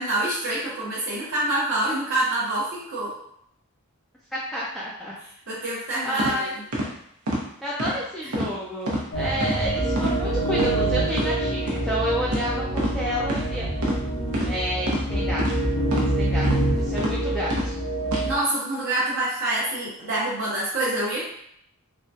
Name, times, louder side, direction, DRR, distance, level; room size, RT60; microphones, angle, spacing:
voice 1, 0.0-3.1 5.5-6.6 18.2-21.2, right 1 dB, 55° right, -9 dB, 0.7 m, -26 dB
voice 2, 4.3-5.1 6.0-6.5 7.6-13.7 14.4-15.4 15.9-16.5 16.8-17.8, equal, ahead, -8 dB, 0.4 m, -30 dB
sound 1, 6.2-6.3 6.7-6.9 7.3-7.4 7.8-8.0 8.3-8.5 8.9-9.0 9.4-9.6 10.0-10.2 10.5-10.7 11.1-11.3 11.7-11.8 12.3-12.5 12.8-12.9 13.3-13.4 13.8-14.0 14.3-14.5 14.9-15.0 15.4-15.5 15.9-16.1 16.4-16.6 17.0-17.1 17.5-17.7 18.1-18.2, equal, 90° right, 0.8 m, -27 dB
sound 2, 9.1-18.3, right 1 dB, 85° left, 0.9 m, -26 dB
3.5 x 2.2 x 2.6 m, 0.71 s
head